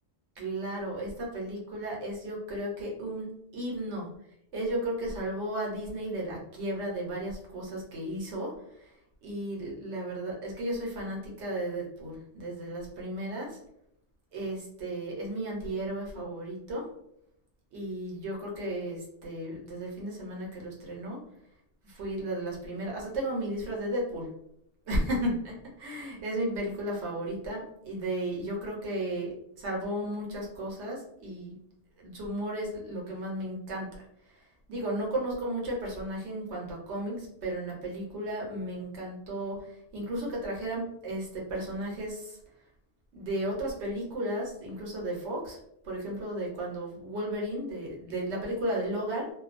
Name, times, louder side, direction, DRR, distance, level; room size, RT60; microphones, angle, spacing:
voice 1, 0.4-4.1 4.5-8.9 9.2-13.6 14.3-16.9 17.7-21.2 21.8-24.3 24.9-31.6 32.0-34.4 34.7-42.4 43.1-45.6 45.8-49.3, right 1 dB, 80° right, -2 dB, 1.1 m, -34 dB
2.5 x 2.2 x 2.4 m, 0.77 s
omnidirectional pair, 1.1 m